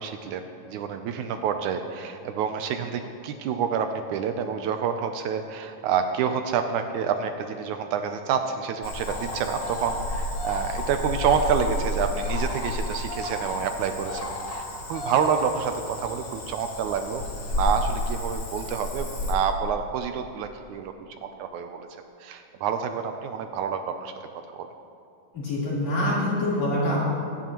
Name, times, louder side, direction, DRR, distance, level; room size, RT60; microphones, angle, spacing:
voice 1, 0.0-20.9 21.2-21.9 22.2-24.1 24.5-24.7, right 7 dB, 80° right, 7 dB, 1.8 m, -28 dB
Cricket / Frog, 8.8-19.3, left 1 dB, 75° left, 0.8 m, -31 dB
voice 2, 25.3-27.0, left 1 dB, 55° left, -8 dB, 4.9 m, -25 dB
23.0 x 9.7 x 3.0 m, 2.6 s
omnidirectional pair, 3.8 m